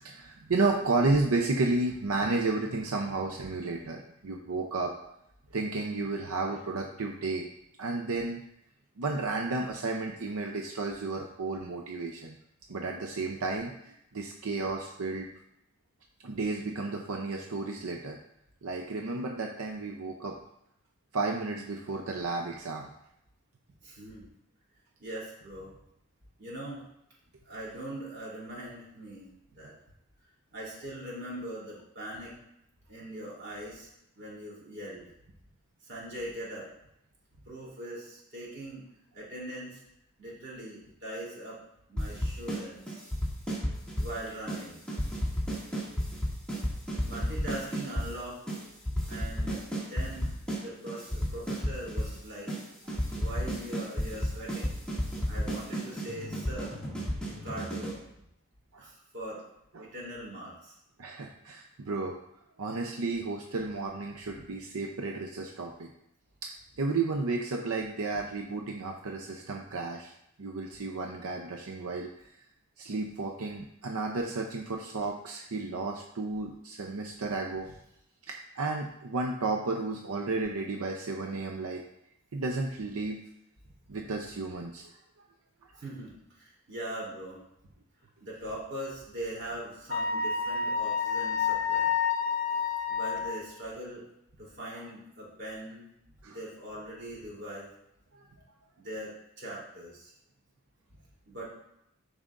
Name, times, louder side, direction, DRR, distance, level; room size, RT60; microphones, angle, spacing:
voice 1, 0.0-4.9 5.5-7.4 7.8-8.4 9.0-12.4 12.7-15.3 16.2-18.2 18.6-20.4 21.1-22.9 58.7-58.8 59.7-59.9 61.0-62.2 62.6-65.9 66.4-66.5 66.8-70.1 70.4-72.3 72.8-77.7 78.3-81.8 82.3-83.2 83.9-84.9 96.2-96.4 98.1-98.2, right 3 dB, 85° right, 2 dB, 0.6 m, -32 dB
voice 2, 23.8-24.2 25.0-25.7 26.4-26.8 27.4-29.7 30.5-32.3 32.9-33.9 34.1-35.1 35.8-36.7 37.4-38.8 39.1-39.8 40.2-41.6 41.9-43.0 44.0-44.8 47.0-48.4 49.1-49.6 49.9-50.3 50.6-52.5 53.1-54.8 55.3-56.8 57.4-58.0 58.8-59.4 59.8-60.7 85.8-87.4 88.2-91.9 92.9-94.0 94.4-95.9 96.2-97.7 98.8-100.1 101.3-101.4, right 1 dB, 50° right, -5 dB, 3.1 m, -41 dB
sound 1, 42.0-42.6 42.9-44.1 44.5-44.6 44.9-48.1 48.5-48.6 48.8-50.6 50.9-52.1 52.5-52.6 52.9-58.0, equal, 5° left, 2.1 m, -32 dB
Wind instrument woodwind instrument, 89.9-93.4, left 6 dB, 60° left, 0.8 m, -29 dB
12.5 x 4.9 x 2.5 m, 0.80 s
head